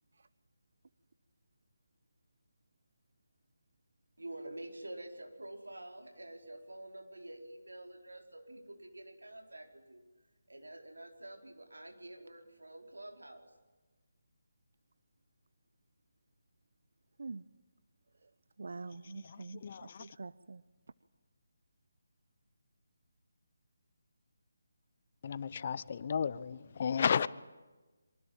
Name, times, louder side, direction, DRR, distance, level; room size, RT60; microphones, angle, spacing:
voice 1, 4.2-10.0 10.5-13.5, right 1 dB, 90° right, 5.0 m, -48 dB
voice 2, 18.6-20.6, right 3 dB, 65° right, 0.8 m, -45 dB
voice 3, 19.2-20.1 25.2-27.3, left 7 dB, 45° left, 0.9 m, -33 dB
25.5 x 24.5 x 9.1 m
figure-of-eight pair, 155°, 0 cm